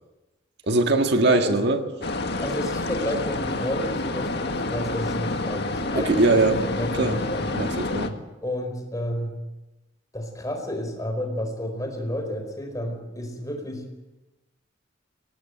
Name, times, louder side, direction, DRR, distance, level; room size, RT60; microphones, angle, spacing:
voice 1, 0.7-1.8 5.9-6.6 7.0-7.2 7.5-8.2, right 2 dB, 60° right, 5 dB, 1.8 m, -21 dB
voice 2, 1.2-1.6 2.4-7.6 8.4-9.3 10.1-13.8, equal, 20° left, 5 dB, 4.7 m, -31 dB
sound 1, 2.0-8.1, left 2 dB, 60° left, 1.9 m, -28 dB
25.0 x 18.5 x 7.9 m, 1.0 s
head